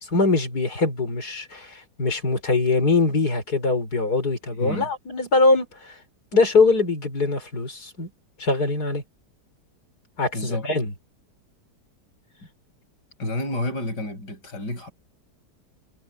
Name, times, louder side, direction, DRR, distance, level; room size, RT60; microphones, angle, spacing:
voice 1, 0.1-6.0 6.3-8.1 8.4-9.0 10.2-10.9, left 3 dB, 65° left, 5.2 m, -22 dB
voice 2, 4.5-4.9 10.3-10.7 13.2-14.9, left 1 dB, 85° left, 7.4 m, -30 dB
omnidirectional pair, 1.8 m